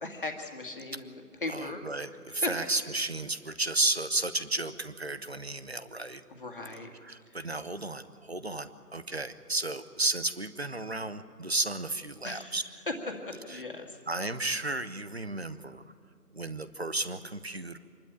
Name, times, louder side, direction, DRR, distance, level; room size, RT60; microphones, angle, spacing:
voice 1, 0.0-1.8 2.3-2.5 2.8-2.9 6.3-6.9 7.3-7.5 12.2-12.6 12.9-14.0, left 2 dB, 30° left, 2 dB, 2.1 m, -38 dB
voice 2, 1.5-6.2 7.0-12.6 14.1-15.8 16.3-17.8, right 2 dB, 40° right, 12 dB, 0.9 m, -33 dB
26.5 x 12.0 x 9.2 m, 2.3 s
figure-of-eight pair, 170°, 48 cm